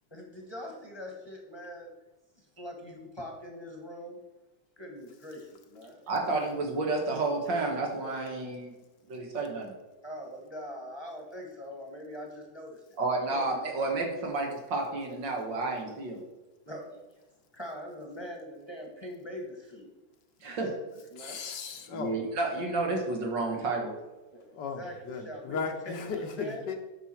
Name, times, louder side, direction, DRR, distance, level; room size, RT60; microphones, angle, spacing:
voice 1, 0.1-1.9 2.4-4.2 4.8-6.0 10.0-13.0 13.3-13.4 13.8-13.9 16.6-17.0 17.5-19.9 20.4-21.4 24.3-25.6 25.8-26.6, equal, 15° left, 0 dB, 1.2 m, -43 dB
voice 2, 6.1-8.7 9.1-9.7 13.0-16.2 20.4-20.7 21.9-23.9, right 3 dB, 70° right, 1 dB, 2.3 m, -31 dB
voice 3, 21.2-22.3 24.5-26.8, left 5 dB, 70° left, 5 dB, 1.5 m, -36 dB
9.3 x 6.0 x 4.4 m, 1.1 s
omnidirectional pair, 2.1 m